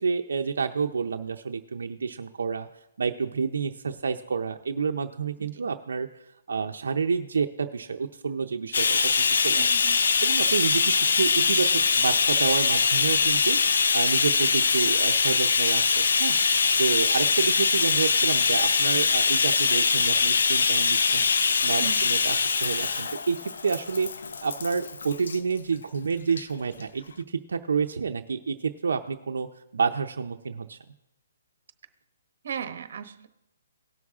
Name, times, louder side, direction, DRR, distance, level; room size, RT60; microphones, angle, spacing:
voice 1, 0.0-2.7 3.0-6.1 6.5-9.7 10.2-16.4 16.8-21.3 21.6-24.1 24.4-29.5 29.7-30.8, right 5 dB, 80° right, 5 dB, 0.7 m, -29 dB
voice 2, 5.4-5.7 9.6-10.1 21.8-22.1 32.4-33.3, right 8 dB, 55° right, 9 dB, 1.1 m, -37 dB
Bathtub (filling or washing), 8.7-25.4 26.3-26.4 26.8-26.9, left 5 dB, 70° left, 0.7 m, -23 dB
18.0 x 6.3 x 3.6 m, 0.86 s
hypercardioid pair, 170°, 0 cm